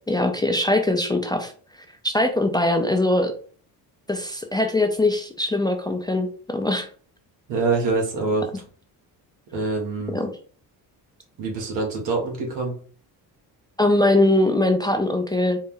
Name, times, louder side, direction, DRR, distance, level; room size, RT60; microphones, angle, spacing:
voice 1, 0.1-1.5 2.0-3.3 4.1-6.9 10.1-10.3 13.8-15.6, left 1 dB, 10° left, 5 dB, 0.4 m, -21 dB
voice 2, 7.5-8.5 9.5-10.2 11.4-12.8, right 3 dB, 80° right, 0 dB, 1.6 m, -25 dB
4.1 x 2.1 x 3.7 m, 0.43 s
cardioid pair, 90°, 42 cm